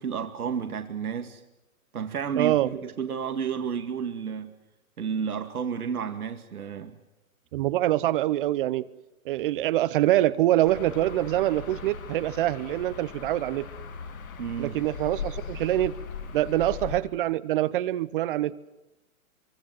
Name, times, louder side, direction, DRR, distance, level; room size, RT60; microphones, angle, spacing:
voice 1, 0.0-1.4 1.9-4.5 5.0-7.0 14.4-14.8, right 7 dB, 85° right, 6 dB, 2.3 m, -31 dB
voice 2, 2.4-2.7 7.5-8.8 9.3-13.7 14.6-15.9 16.3-18.7, right 14 dB, 40° right, 16 dB, 0.9 m, -25 dB
sound 1, 10.6-17.0, left 6 dB, 70° left, 7.2 m, -39 dB
25.0 x 24.5 x 7.8 m, 0.95 s
hypercardioid pair, 145°, 43 cm